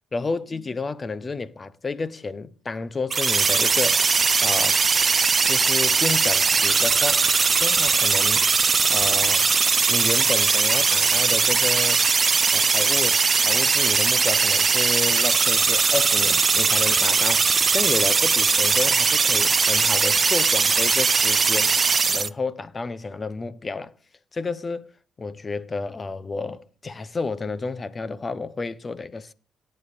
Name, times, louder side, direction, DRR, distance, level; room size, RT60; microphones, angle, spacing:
voice 1, 0.1-4.1 4.4-4.8 5.5-7.3 7.6-8.4 8.9-9.5 9.9-12.0 12.5-21.8 22.1-23.9 24.3-24.9 25.2-29.3, left 3 dB, 30° left, 0.8 m, -31 dB
sound 1, 3.1-22.3, right 5 dB, 35° right, 0.4 m, -20 dB
17.5 x 8.8 x 2.5 m
cardioid pair, 90°, 0 cm